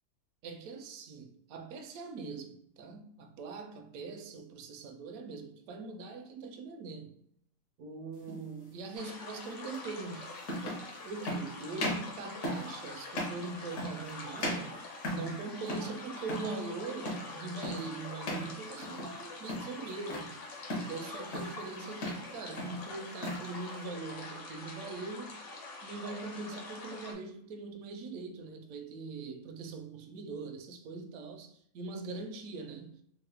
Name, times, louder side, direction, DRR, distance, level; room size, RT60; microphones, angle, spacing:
voice 1, 0.4-7.2 7.8-10.4 11.0-14.8 15.1-20.4 20.8-25.4 25.8-33.0, right 4 dB, 70° right, 0.9 m, -42 dB
sound 1, 8.2-8.4 9.7-9.8 10.4-10.9 11.2-11.5 11.8-12.1 12.4-12.7 13.1-13.4 13.8-14.1 14.4-15.4 15.7-16.0 16.2-16.5 17.0-17.3 17.6-17.9 18.2-18.5 18.8-19.2 19.5-20.3 20.7-21.0 21.3-21.6 21.9-22.3 22.6-23.4, equal, 70° left, 1.4 m, -36 dB
sound 2, 8.9-27.1, left 3 dB, 50° left, 0.8 m, -45 dB
3.6 x 2.0 x 3.3 m
omnidirectional pair, 1.7 m